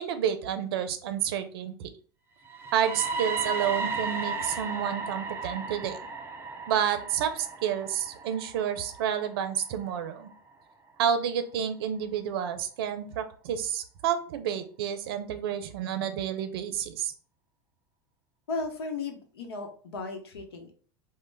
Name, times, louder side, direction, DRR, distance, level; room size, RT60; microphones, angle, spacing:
voice 1, 0.0-1.9 2.7-6.0 6.7-10.3 11.0-17.1, right 9 dB, 75° right, 10 dB, 0.5 m, -30 dB
sound 1, 2.4-10.4, right 4 dB, 20° right, 0.5 m, -35 dB
voice 2, 18.5-20.7, left 3 dB, 90° left, 4 dB, 0.7 m, -35 dB
3.0 x 2.1 x 3.2 m, 0.42 s
hypercardioid pair, 105°, 13 cm